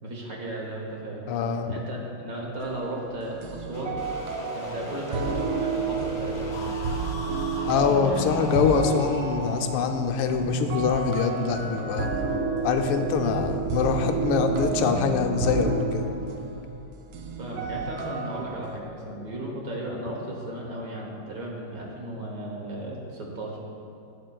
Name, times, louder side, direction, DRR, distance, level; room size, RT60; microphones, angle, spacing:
voice 1, 0.0-1.2 1.7-4.0 4.5-6.6 8.0-8.3 17.4-23.6, right 1 dB, 50° right, -2 dB, 1.2 m, -35 dB
voice 2, 1.3-1.7 7.7-12.1 12.6-16.1, left 5 dB, 85° left, 4 dB, 1.5 m, -24 dB
sound 1, 2.6-18.8, right 4 dB, 70° right, 1.3 m, -31 dB
sound 2, 3.7-11.4, left 2 dB, 60° left, 0.5 m, -38 dB
11.5 x 8.5 x 2.3 m, 2.9 s
omnidirectional pair, 2.4 m